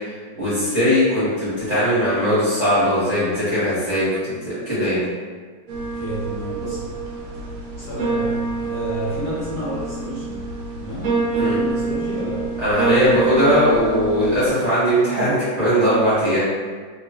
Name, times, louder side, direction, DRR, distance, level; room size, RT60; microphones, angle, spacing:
voice 1, 0.4-5.0 11.4-11.5 12.6-16.4, equal, 40° right, -12 dB, 1.2 m, -19 dB
sound 1, 5.7-14.5, right 4 dB, 70° right, 1.0 m, -26 dB
voice 2, 5.9-6.8 7.8-10.3 10.8-12.4, equal, 60° left, -10 dB, 1.4 m, -30 dB
3.4 x 3.0 x 2.3 m, 1.5 s
omnidirectional pair, 2.2 m